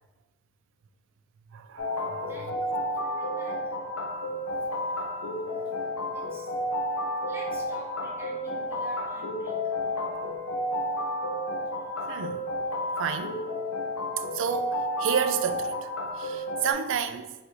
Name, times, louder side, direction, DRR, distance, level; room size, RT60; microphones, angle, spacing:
voice 1, 1.5-2.3 12.1-12.4 13.0-13.4 14.3-15.8 16.2-17.3, right 7 dB, 60° right, 0.3 m, -30 dB
sound 1, 1.8-16.7, left 1 dB, 90° left, 0.6 m, -31 dB
voice 2, 2.3-3.8 5.5-6.5 7.3-10.0, right 1 dB, 10° right, 0.6 m, -46 dB
4.0 x 2.6 x 4.5 m
head